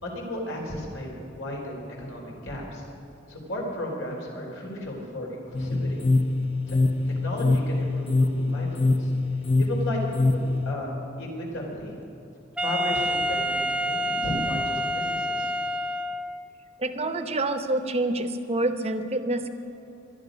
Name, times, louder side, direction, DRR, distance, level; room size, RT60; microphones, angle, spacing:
voice 1, 0.0-2.8 3.3-6.0 6.7-6.8 7.1-9.1 9.6-10.4 10.6-10.9 11.2-12.0 12.6-15.5, left 1 dB, 80° left, -1 dB, 4.1 m, -34 dB
sound 1, 5.5-10.7, left 2 dB, 30° left, 0.7 m, -24 dB
Wind instrument woodwind instrument, 12.6-16.5, equal, 5° right, 0.4 m, -28 dB
voice 2, 16.8-19.5, right 2 dB, 30° right, 8 dB, 0.9 m, -27 dB
22.0 x 12.5 x 5.2 m, 2.8 s
head